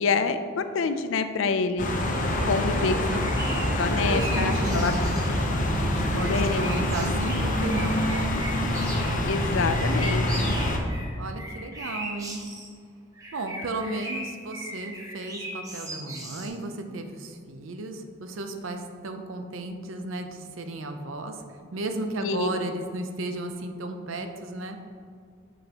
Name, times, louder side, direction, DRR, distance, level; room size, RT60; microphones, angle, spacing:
voice 1, 0.0-1.9 2.4-2.9 3.3-3.4 3.8-4.9 6.1-6.7 9.2-10.6 22.2-22.5, left 4 dB, 80° left, 9 dB, 0.4 m, -27 dB
sound 1, 1.8-10.8, left 1 dB, 40° left, 0.7 m, -26 dB
voice 2, 2.4-3.3 3.7-5.2 5.7-8.4 11.2-12.4 13.3-24.8, right 2 dB, 85° right, 6 dB, 0.6 m, -34 dB
sound 2, 3.2-5.4 5.9-9.2 9.6-12.7 13.1-16.5, right 1 dB, 15° right, 0.8 m, -38 dB
6.6 x 6.3 x 2.9 m, 2.2 s
head